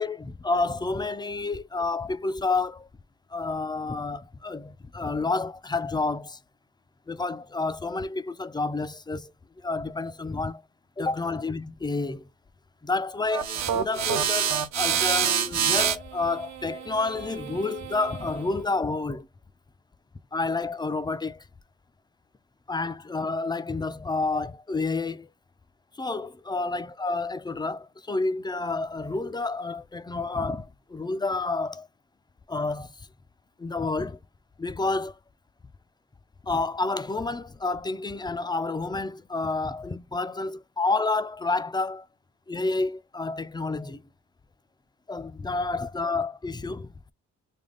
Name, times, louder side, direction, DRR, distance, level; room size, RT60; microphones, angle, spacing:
voice 1, 0.0-2.9 3.3-6.4 7.1-10.6 11.0-12.3 12.8-19.3 20.3-21.5 22.7-25.3 26.0-31.9 32.5-33.1 33.6-34.2 34.6-35.2 36.4-42.1 42.5-44.0 45.1-47.1, left 3 dB, 15° left, 0.5 m, -29 dB
sound 1, 13.3-18.5, right 9 dB, 65° right, 1.0 m, -27 dB
3.5 x 2.2 x 3.8 m
cardioid pair, 90°, 30 cm